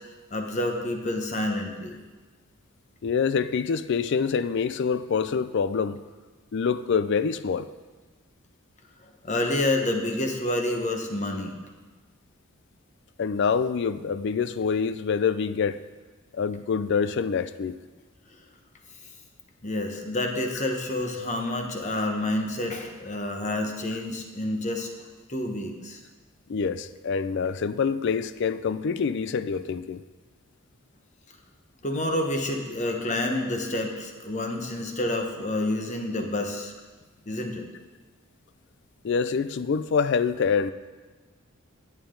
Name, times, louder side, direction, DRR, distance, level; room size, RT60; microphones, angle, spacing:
voice 1, 0.3-2.0 9.2-11.6 19.6-24.9 25.3-26.0 31.8-36.7 37.3-37.6, left 1 dB, 35° left, 3 dB, 1.2 m, -28 dB
voice 2, 3.0-6.0 6.5-7.7 13.2-15.8 16.3-17.8 26.5-30.0 39.0-40.7, left 6 dB, 55° left, 14 dB, 0.4 m, -26 dB
15.5 x 8.9 x 3.9 m, 1.3 s
head